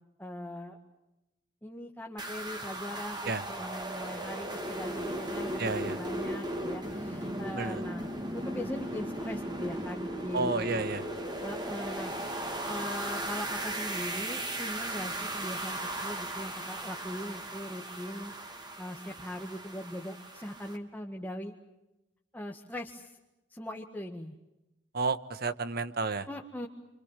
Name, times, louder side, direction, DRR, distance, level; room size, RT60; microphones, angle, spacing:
voice 1, 0.2-0.8 1.6-8.1 8.5-10.8 11.4-12.1 12.7-18.3 18.8-21.5 22.3-23.1 23.5-24.3 26.3-26.7, left 1 dB, 10° left, 1 dB, 1.7 m, -40 dB
sound 1, 2.2-20.8, right 1 dB, 25° right, 2.7 m, -37 dB
voice 2, 5.6-6.0 7.5-7.8 10.3-11.0 24.9-26.3, right 3 dB, 55° right, 12 dB, 1.4 m, -31 dB
29.0 x 26.0 x 7.5 m, 0.98 s
head